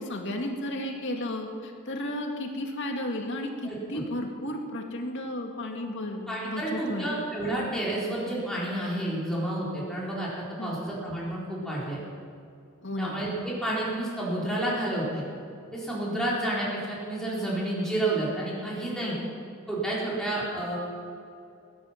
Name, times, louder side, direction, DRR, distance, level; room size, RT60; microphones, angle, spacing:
voice 1, 0.0-7.1 10.6-10.8 12.8-13.2 19.0-19.2, left 1 dB, 60° left, 2 dB, 2.1 m, -33 dB
voice 2, 3.6-4.0 6.3-10.3 10.6-12.0 13.0-15.3 15.7-19.1 19.7-20.8, right 1 dB, 5° left, -7 dB, 4.2 m, -30 dB
20.0 x 10.0 x 5.9 m, 2.6 s
head